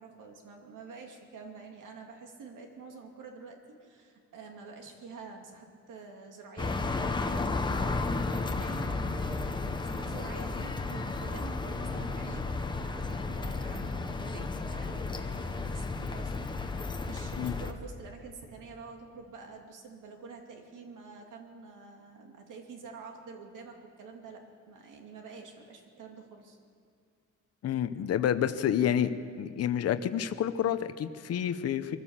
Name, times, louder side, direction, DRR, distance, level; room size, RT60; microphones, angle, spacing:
voice 1, 0.0-26.6, right 4 dB, 80° right, 2 dB, 2.4 m, -48 dB
sound 1, 6.6-17.7, left 3 dB, 15° left, 0.9 m, -33 dB
voice 2, 27.6-29.1 29.4-32.0, left 9 dB, 55° left, 10 dB, 0.8 m, -29 dB
23.5 x 15.0 x 7.3 m, 2.2 s
wide cardioid pair, 175°, 31 cm